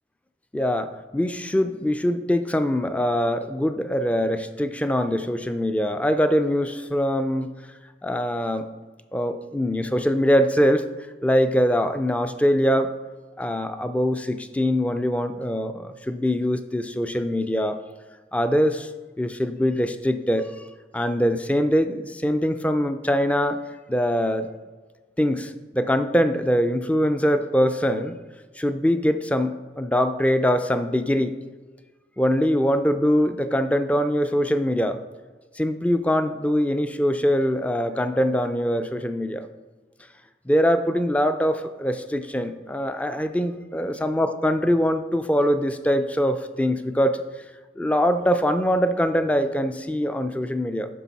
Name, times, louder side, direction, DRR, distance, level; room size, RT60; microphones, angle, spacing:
voice 1, 0.5-7.5 8.0-8.7 9.1-10.8 11.2-12.9 13.4-17.8 18.3-18.9 19.2-20.5 20.9-23.6 23.9-24.5 25.2-28.2 28.6-31.4 32.2-35.0 35.6-39.5 40.5-47.2 47.8-50.9, equal, 10° left, 9 dB, 0.4 m, -23 dB
10.0 x 6.0 x 4.1 m, 1.3 s
head